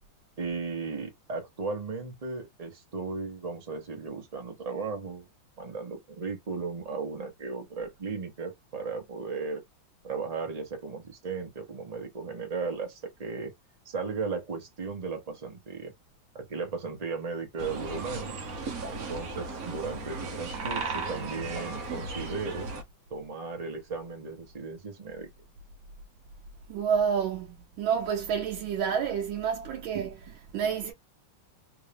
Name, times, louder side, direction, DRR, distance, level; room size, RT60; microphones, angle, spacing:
voice 1, 0.4-5.3 5.6-9.6 10.0-13.5 13.8-15.9 16.3-18.4 18.9-22.7 23.1-25.3, right 4 dB, 30° right, 0.8 m, -36 dB
sound 1, 17.6-22.8, right 3 dB, 55° right, 1.2 m, -36 dB
voice 2, 26.7-30.9, right 7 dB, 85° right, 1.4 m, -29 dB
3.5 x 2.6 x 3.4 m
omnidirectional pair, 2.2 m